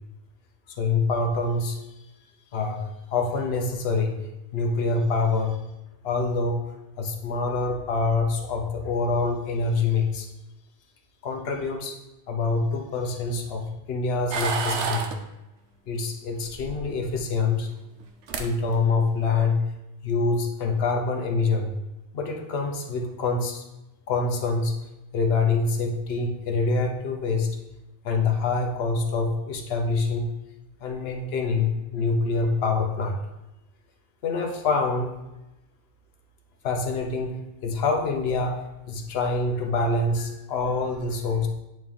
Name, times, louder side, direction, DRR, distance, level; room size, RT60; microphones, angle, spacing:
voice 1, 0.8-1.8 2.5-4.3 4.5-5.6 6.0-6.6 7.0-10.3 11.2-12.0 12.3-15.1 15.9-17.7 18.4-19.6 20.0-21.7 22.1-23.6 24.1-24.7 25.1-27.6 28.0-30.3 30.8-33.2 34.2-35.2 36.6-38.6 38.9-41.5, left 3 dB, 70° left, 2 dB, 1.0 m, -25 dB
sound 1, 14.3-15.2 16.5-17.2 18.0-18.1 18.3-18.5 18.9-19.2, right 5 dB, 85° right, 1.0 m, -29 dB
8.8 x 3.2 x 3.7 m, 0.97 s
omnidirectional pair, 1.1 m